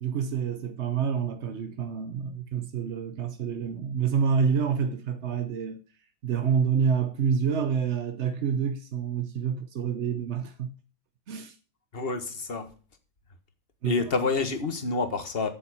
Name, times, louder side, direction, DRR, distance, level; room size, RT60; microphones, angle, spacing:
voice 1, 0.0-5.8 6.2-10.7 11.3-11.6 13.8-13.9, right 6 dB, 65° right, 0.7 m, -28 dB
voice 2, 11.9-12.7 13.8-15.5, left 4 dB, 30° left, 1.5 m, -28 dB
8.6 x 7.2 x 8.5 m
omnidirectional pair, 2.2 m